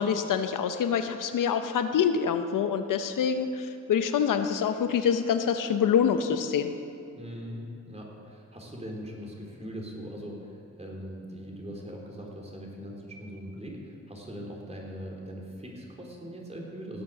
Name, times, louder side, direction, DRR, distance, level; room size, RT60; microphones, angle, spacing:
voice 1, 0.0-6.7, left 7 dB, 80° left, 8 dB, 0.8 m, -26 dB
voice 2, 7.1-17.0, equal, 20° right, -1 dB, 3.7 m, -41 dB
17.5 x 7.6 x 6.4 m, 2.5 s
cardioid pair, 60°, 31 cm